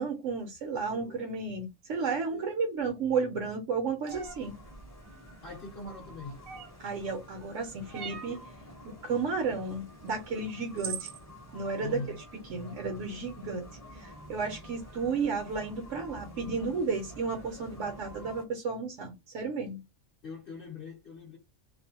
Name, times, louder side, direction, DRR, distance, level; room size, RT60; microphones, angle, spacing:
voice 1, 0.0-4.6 6.8-8.4 8.8-11.1 11.5-12.0 12.5-19.8, right 4 dB, 80° right, 1.0 m, -33 dB
voice 2, 0.9-1.2 2.3-2.5 5.4-6.4 11.8-12.2 20.2-21.4, left 4 dB, 50° left, 0.8 m, -42 dB
sound 1, 4.1-18.4, equal, 15° left, 0.6 m, -49 dB
sound 2, 4.1-4.4 6.5-6.9 7.9-8.4 10.1-10.2 10.8-11.2, right 8 dB, 60° right, 0.8 m, -39 dB
2.6 x 2.1 x 2.7 m
omnidirectional pair, 1.3 m